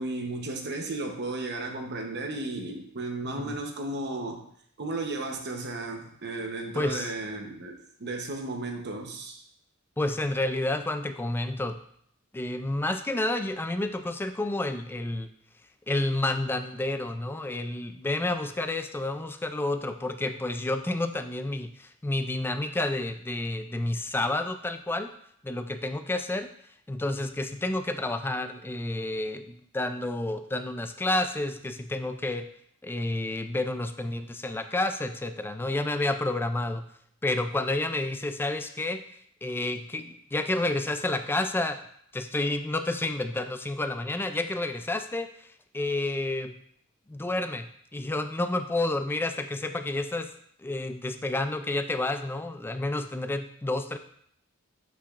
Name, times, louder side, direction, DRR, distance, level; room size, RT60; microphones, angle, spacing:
voice 1, 0.0-4.4 4.8-9.4, right 2 dB, 50° right, 4 dB, 0.9 m, -34 dB
voice 2, 6.7-7.1 10.0-11.8 12.3-15.3 15.9-25.1 25.4-26.5 26.9-32.5 32.8-36.9 37.2-39.0 39.4-41.8 42.1-45.5 45.7-46.6 47.1-50.3 50.6-54.0, left 2 dB, 10° left, 8 dB, 0.3 m, -30 dB
8.2 x 5.7 x 2.5 m, 0.66 s
head